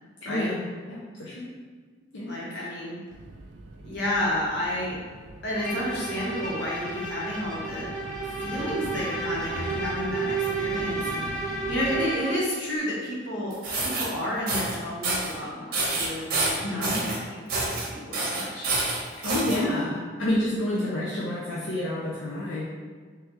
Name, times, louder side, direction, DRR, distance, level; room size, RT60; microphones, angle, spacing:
voice 1, 0.2-1.5 2.1-2.7 16.6-17.0 19.2-22.6, left 1 dB, 90° left, -7 dB, 0.6 m, -29 dB
voice 2, 2.2-3.0 3.8-5.0 5.4-7.9 8.2-18.7 19.5-19.9 20.7-20.8, left 1 dB, 65° left, -6 dB, 1.1 m, -31 dB
sound 1, 3.1-12.1, right 2 dB, 70° right, 0.4 m, -42 dB
Bowed string instrument, 5.5-12.5, right 3 dB, 5° left, 0.9 m, -32 dB
sound 2, 13.5-14.0 14.5-14.7 15.0-15.3 15.7-17.2 17.5-17.8 18.1-19.6, right 2 dB, 50° right, 0.8 m, -27 dB
3.3 x 3.3 x 3.1 m, 1.5 s
head